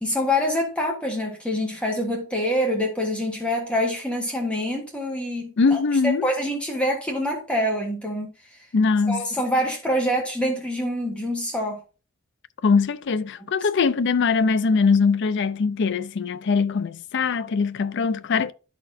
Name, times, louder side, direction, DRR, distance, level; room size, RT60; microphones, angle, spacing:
voice 1, 0.0-8.3 9.1-11.8, equal, 5° left, 1.3 m, -25 dB
voice 2, 5.6-6.3 8.7-9.2 12.6-18.5, left 5 dB, 50° left, 0.4 m, -21 dB
12.0 x 4.3 x 2.7 m
head